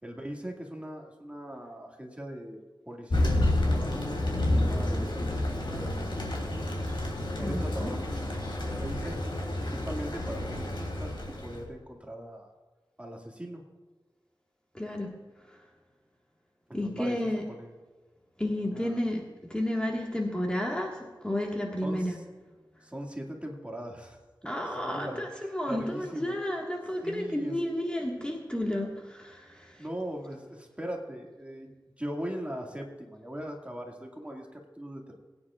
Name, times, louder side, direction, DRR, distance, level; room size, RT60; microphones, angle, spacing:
voice 1, 0.0-2.6 2.9-6.3 7.1-9.2 9.7-11.1 11.4-12.5 13.0-13.6 16.7-17.2 17.5-17.8 18.6-19.1 21.8-22.2 22.8-24.2 24.7-26.4 27.0-27.6 29.8-35.2, equal, 15° right, 0 dB, 2.1 m, -40 dB
Thunder, 3.1-11.6, left 1 dB, 85° left, 2.9 m, -29 dB
voice 2, 7.4-7.9 14.7-15.1 15.5-15.6 16.7-17.4 18.4-19.2 19.5-22.1 24.4-29.8, left 1 dB, 10° left, -1 dB, 1.7 m, -32 dB
22.0 x 9.7 x 2.4 m, 1.3 s
wide cardioid pair, 70°, 8 cm